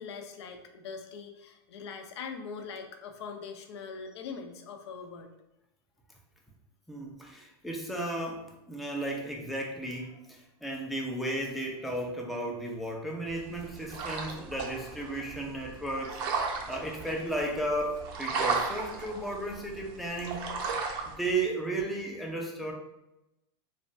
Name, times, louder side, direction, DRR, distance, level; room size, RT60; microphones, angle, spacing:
voice 1, 0.0-5.3, left 5 dB, 80° left, 5 dB, 0.5 m, -42 dB
voice 2, 6.9-20.4 21.0-22.7, right 1 dB, ahead, -1 dB, 0.4 m, -34 dB
sound 1, 13.3-21.1, right 4 dB, 55° right, 0.6 m, -35 dB
3.1 x 2.2 x 2.5 m, 0.93 s
supercardioid pair, 130°, 14 cm